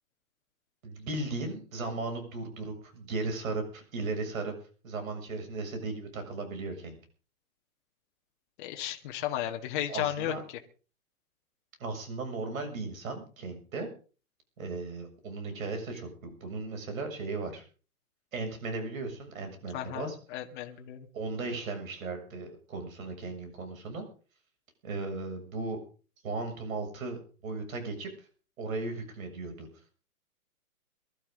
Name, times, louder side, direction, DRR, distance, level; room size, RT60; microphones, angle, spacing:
voice 1, 0.8-4.5 4.8-7.0 9.9-10.4 11.8-13.9 14.6-17.6 18.3-20.2 21.1-24.1 24.8-25.8 26.2-28.1 28.6-29.7, right 3 dB, 65° right, 6 dB, 7.2 m, -36 dB
voice 2, 8.6-10.3 19.7-21.1, left 12 dB, 35° left, 3 dB, 1.8 m, -34 dB
22.5 x 13.0 x 3.9 m, 0.38 s
hypercardioid pair, 150°, 44 cm